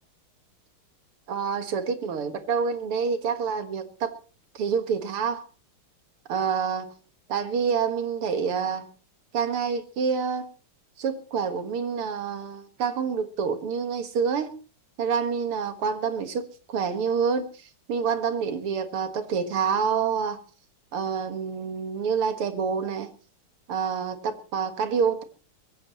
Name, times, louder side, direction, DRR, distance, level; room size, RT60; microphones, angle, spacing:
voice 1, 1.3-4.2 4.5-5.4 6.3-6.9 7.3-8.9 9.3-10.5 11.0-14.5 15.0-20.4 20.9-23.1 23.7-25.2, right 6 dB, 90° right, 2.5 m, -27 dB
22.5 x 16.0 x 3.0 m
omnidirectional pair, 2.4 m